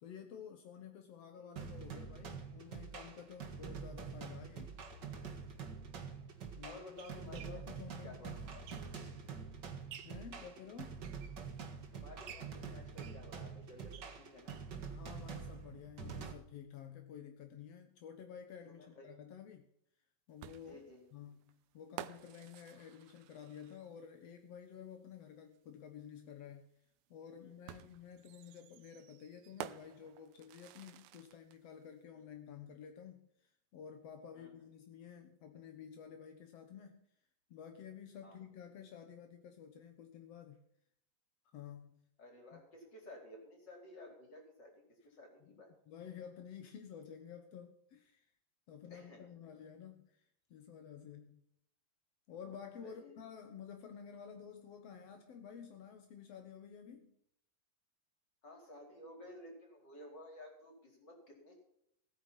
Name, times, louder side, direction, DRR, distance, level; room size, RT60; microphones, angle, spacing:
voice 1, 0.0-4.7 6.6-8.4 10.0-11.0 14.9-19.7 20.3-20.8 21.1-26.7 27.1-37.0 37.5-40.6 41.5-42.0 42.5-42.6 45.5-45.6 45.9-48.3 48.7-50.2 50.5-51.4 52.3-57.2, left 8 dB, 60° left, 1.7 m, -52 dB
sound 1, 1.6-16.3, right 5 dB, 40° right, 1.7 m, -46 dB
sound 2, 5.4-5.5 6.3-9.2 9.6-10.3 10.8-11.8 12.2-14.8 15.1-15.2 15.5-15.6 16.0-16.1, right 9 dB, 70° right, 2.7 m, -56 dB
voice 2, 6.6-7.6 8.0-8.8 11.9-14.6 18.7-19.1 20.7-21.0 27.4-27.7 32.1-32.2 34.3-34.5 38.2-38.4 42.2-45.7 48.9-49.5 52.8-53.2 58.4-61.6, left 1 dB, 30° left, 4.7 m, -54 dB
sound 3, 20.4-24.1 25.5-25.6 27.7-31.6, right 13 dB, 90° right, 2.7 m, -51 dB
17.5 x 9.4 x 5.7 m
omnidirectional pair, 4.3 m